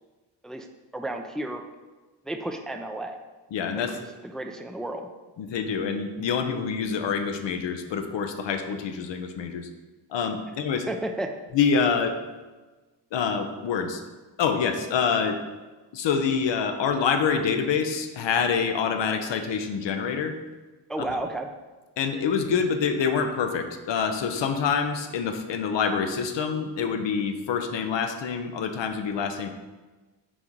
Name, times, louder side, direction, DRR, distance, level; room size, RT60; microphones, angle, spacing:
voice 1, 0.9-1.6 2.2-3.2 3.8-3.9 4.3-5.1 10.9-11.3 20.9-21.5, right 1 dB, ahead, 5 dB, 0.5 m, -32 dB
voice 2, 3.5-4.0 5.4-9.7 10.1-10.9 11.5-12.2 13.1-14.0 14.4-15.4 15.9-20.3 22.0-29.5, left 6 dB, 70° left, 7 dB, 0.8 m, -26 dB
6.1 x 3.8 x 4.6 m, 1.2 s
cardioid pair, 65°, 46 cm